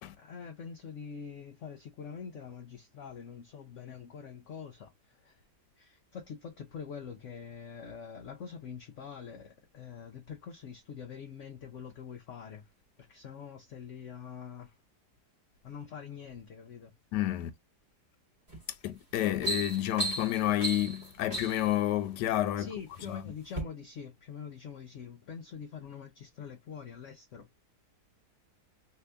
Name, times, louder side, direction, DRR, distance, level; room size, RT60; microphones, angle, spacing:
voice 1, 0.2-5.5 5.8-12.7 13.0-14.8 15.6-16.9 22.6-27.6, left 7 dB, 65° left, 0.8 m, -45 dB
voice 2, 17.1-17.5 18.8-22.7 23.1-23.2, left 13 dB, 85° left, 1.2 m, -30 dB
sound 1, 18.5-18.7 19.1-21.7 22.5-23.1 23.5-23.6, right 2 dB, 25° right, 1.0 m, -35 dB
2.8 x 2.8 x 3.3 m
omnidirectional pair, 1.8 m